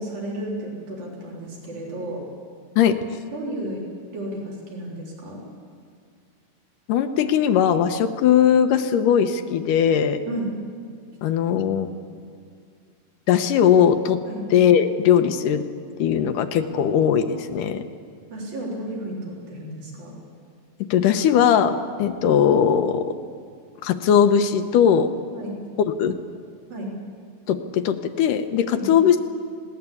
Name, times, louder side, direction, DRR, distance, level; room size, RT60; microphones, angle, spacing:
voice 1, 0.0-2.3 3.3-3.9 4.1-5.4 10.3-10.5 14.2-14.5 18.3-20.2 25.3-25.5 26.7-26.9 28.7-28.9, right 1 dB, 85° right, -3 dB, 5.3 m, -33 dB
voice 2, 6.9-10.2 11.2-11.9 13.3-14.2 14.5-15.6 16.0-17.8 20.9-23.1 23.8-25.1 26.0-26.1 27.5-29.2, left 8 dB, 75° left, 8 dB, 2.4 m, -19 dB
20.0 x 17.5 x 8.4 m, 2.2 s
omnidirectional pair, 4.0 m